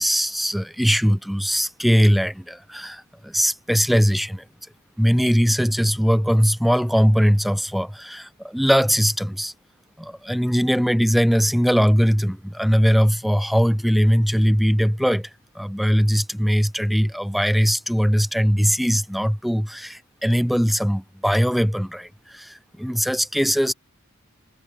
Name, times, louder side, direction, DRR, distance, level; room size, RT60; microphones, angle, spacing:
voice 1, 0.0-4.4 5.0-9.5 10.0-15.3 15.6-23.7, equal, ahead, 0.4 m, -20 dB
head